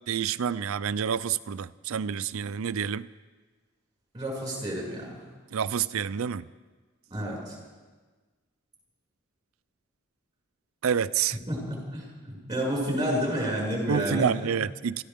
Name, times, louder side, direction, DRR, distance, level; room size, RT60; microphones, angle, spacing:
voice 1, 0.1-3.1 5.5-6.5 10.8-11.4 13.9-15.0, right 7 dB, 90° right, 17 dB, 0.5 m, -28 dB
voice 2, 4.1-5.1 7.1-7.6 11.5-14.3, equal, 20° right, -4 dB, 6.0 m, -30 dB
27.0 x 14.0 x 3.6 m, 1.3 s
head